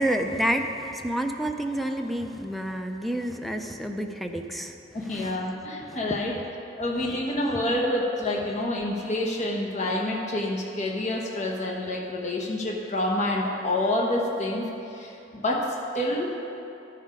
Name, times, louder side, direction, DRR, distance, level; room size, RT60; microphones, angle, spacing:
voice 1, 0.0-4.7 5.1-5.5 5.9-6.0 7.5-7.6, right 1 dB, ahead, 5 dB, 0.5 m, -29 dB
voice 2, 4.9-6.4 6.8-14.6 14.9-16.3, left 1 dB, 40° left, -2 dB, 1.0 m, -28 dB
12.5 x 5.7 x 5.0 m, 2.9 s
head